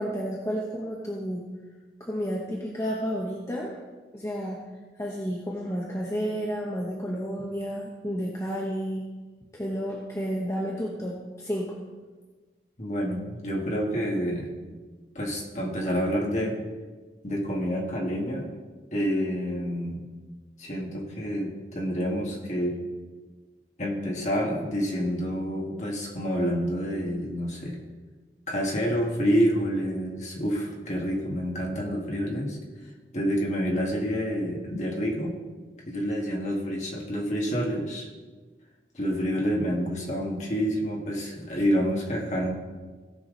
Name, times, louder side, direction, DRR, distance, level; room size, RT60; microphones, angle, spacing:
voice 1, 0.0-1.4 2.0-3.8 4.1-4.6 5.0-9.1 9.5-11.7, equal, 15° left, -3 dB, 0.9 m, -31 dB
voice 2, 12.8-14.5 15.2-16.6 17.2-18.6 18.9-20.0 20.6-22.8 23.8-27.8 28.5-32.6 33.1-35.3 35.9-38.1 38.9-42.5, equal, 40° left, -1 dB, 1.8 m, -28 dB
17.0 x 5.9 x 3.9 m, 1.3 s
head